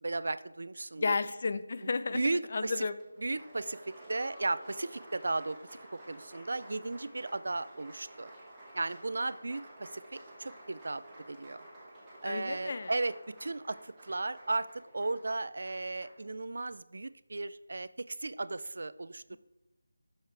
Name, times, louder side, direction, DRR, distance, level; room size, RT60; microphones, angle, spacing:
voice 1, 0.0-1.1 2.1-2.9 3.2-5.6 6.1-8.3 8.7-11.0 11.3-11.6 12.2-19.4, right 2 dB, 65° right, 15 dB, 0.4 m, -35 dB
voice 2, 1.0-2.2 2.5-3.0 12.2-12.9, left 4 dB, 40° left, 12 dB, 0.5 m, -32 dB
Applause, 3.0-16.2, right 1 dB, 5° right, 1.9 m, -52 dB
12.5 x 6.5 x 3.4 m, 1.0 s
figure-of-eight pair, 170°, 0 cm